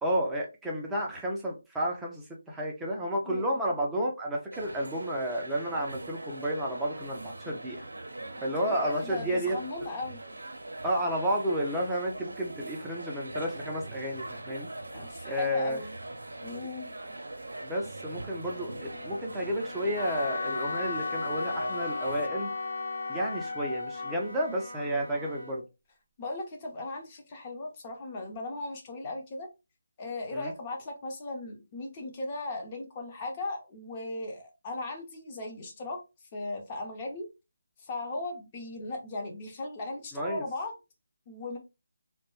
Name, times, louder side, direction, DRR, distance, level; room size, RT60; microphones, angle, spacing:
voice 1, 0.0-7.8 8.4-9.6 10.8-14.7 15.2-15.8 17.6-22.5 23.1-25.6 30.3-30.5 40.1-40.4, equal, 5° right, 0.4 m, -31 dB
voice 2, 3.2-3.7 8.6-10.2 14.9-16.0 16.4-16.9 26.2-29.5 30.0-36.0 36.3-37.3 37.8-40.7 41.3-41.6, left 2 dB, 25° left, 0.7 m, -37 dB
sound 1, 4.5-22.3, right 2 dB, 85° right, 0.6 m, -42 dB
Wind instrument woodwind instrument, 18.4-25.7, left 2 dB, 85° left, 0.9 m, -44 dB
Wind instrument woodwind instrument 2, 20.0-24.2, left 4 dB, 55° left, 0.4 m, -34 dB
2.2 x 2.1 x 3.0 m
figure-of-eight pair, 160°, 0 cm